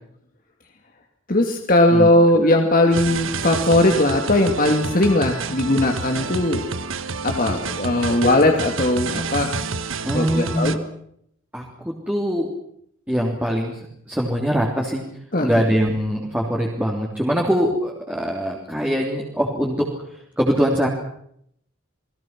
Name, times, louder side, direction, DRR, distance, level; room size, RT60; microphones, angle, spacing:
voice 1, 1.3-6.6 7.2-9.6 10.1-10.8 15.3-15.5, left 1 dB, 40° left, 3 dB, 2.5 m, -18 dB
sound 1, 2.9-10.7, right 4 dB, 70° right, 1.5 m, -29 dB
voice 2, 10.0-10.8 11.5-12.5 13.1-15.0 15.4-20.9, equal, 5° right, -3 dB, 3.4 m, -23 dB
29.5 x 21.0 x 6.1 m, 0.71 s
head